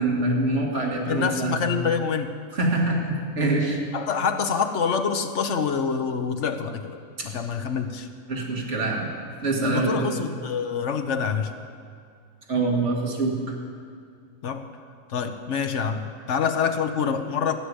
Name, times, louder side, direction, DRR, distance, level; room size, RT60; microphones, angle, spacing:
voice 1, 0.0-1.7 2.5-3.8 7.2-7.3 8.3-9.1 9.4-10.2 12.5-13.4, right 2 dB, 60° right, -2 dB, 2.3 m, -25 dB
voice 2, 1.0-2.3 3.4-3.5 3.9-8.1 9.6-11.5 14.4-14.7 15.1-17.6, left 6 dB, 65° left, 7 dB, 1.1 m, -26 dB
15.0 x 6.7 x 9.7 m, 2.2 s
omnidirectional pair, 1.4 m